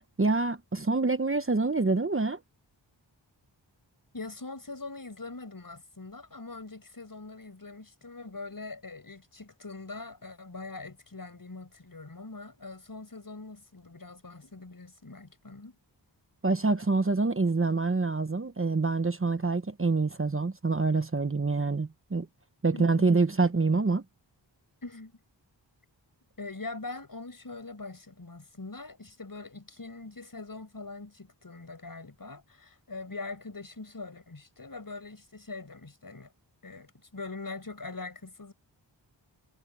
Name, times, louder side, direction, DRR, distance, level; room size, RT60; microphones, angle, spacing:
voice 1, 0.2-2.4 16.4-22.3 22.6-24.0, right 3 dB, 30° right, 0.9 m, -26 dB
voice 2, 4.1-15.8 22.7-23.1 24.8-25.1 26.4-36.3 36.6-38.5, left 3 dB, 45° left, 6.2 m, -42 dB
wide cardioid pair, 65°, 45 cm